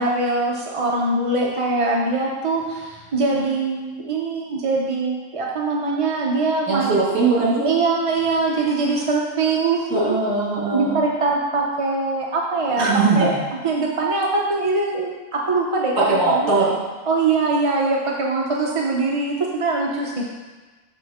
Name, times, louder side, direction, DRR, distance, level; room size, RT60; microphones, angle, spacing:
voice 1, 0.0-6.9 7.6-10.2 10.7-13.3 13.6-16.5 17.1-20.3, right 3 dB, 35° right, -2 dB, 0.5 m, -22 dB
voice 2, 6.7-7.7 9.9-10.9 12.8-13.3 16.0-16.7, right 3 dB, 70° right, -6 dB, 2.3 m, -20 dB
7.7 x 6.6 x 3.5 m, 1.3 s
omnidirectional pair, 1.4 m